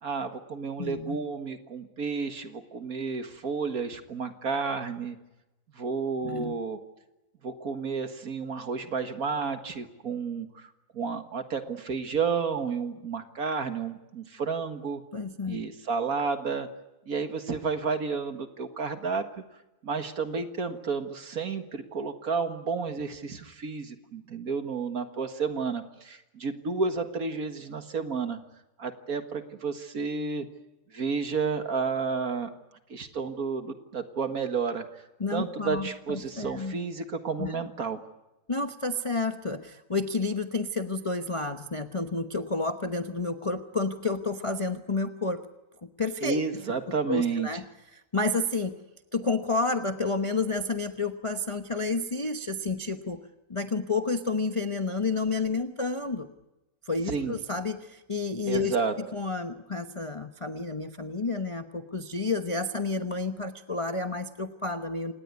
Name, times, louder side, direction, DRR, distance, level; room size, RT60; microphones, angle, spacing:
voice 1, 0.0-5.2 5.8-6.8 7.4-15.0 15.5-16.7 17.1-19.3 19.8-28.4 28.8-30.5 30.9-32.5 32.9-34.9 35.3-38.0 46.2-47.5 57.1-57.4 58.5-58.9, right 5 dB, 50° right, 7 dB, 2.0 m, -31 dB
voice 2, 0.8-1.2 6.2-6.6 15.1-15.6 35.2-36.8 37.4-37.6 38.5-45.4 46.0-46.4 46.9-47.6 47.9-48.7 49.1-53.2 53.5-56.3 56.9-58.7 59.1-65.1, left 3 dB, 30° left, 6 dB, 0.6 m, -30 dB
27.0 x 19.0 x 9.5 m, 1.0 s
omnidirectional pair, 2.1 m